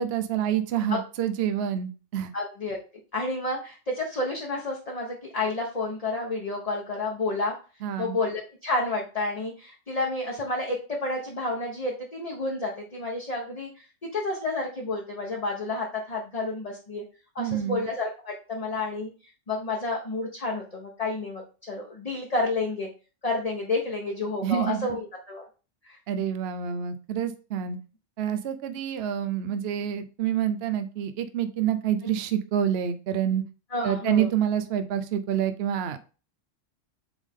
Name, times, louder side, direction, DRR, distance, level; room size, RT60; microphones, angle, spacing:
voice 1, 0.0-2.3 7.8-8.2 17.4-17.8 24.4-24.9 26.1-27.8 28.2-33.4 33.8-36.0, right 9 dB, 60° right, 10 dB, 0.8 m, -27 dB
voice 2, 2.3-2.8 3.1-7.5 8.0-13.7 14.1-17.0 17.3-19.1 19.5-22.9 23.2-25.5 25.8-26.0 32.0-32.1 33.7-34.3, left 2 dB, 30° left, -1 dB, 1.1 m, -30 dB
8.2 x 3.6 x 3.6 m, 0.35 s
omnidirectional pair, 1.3 m